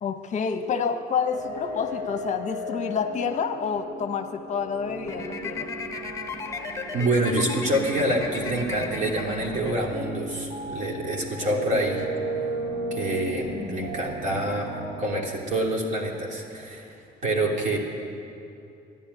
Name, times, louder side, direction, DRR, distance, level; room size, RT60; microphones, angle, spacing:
voice 1, 0.0-5.7 13.5-13.9, left 6 dB, 45° left, 7 dB, 1.0 m, -29 dB
sound 1, 1.3-15.0, right 1 dB, 75° right, 3.9 m, -36 dB
sound 2, 5.0-10.3, left 4 dB, 20° left, 1.2 m, -36 dB
voice 2, 6.9-12.1 12.9-17.0 17.2-17.8, right 1 dB, 45° right, -1 dB, 3.2 m, -26 dB
14.0 x 10.5 x 9.8 m, 2.7 s
cardioid pair, 110°, 17 cm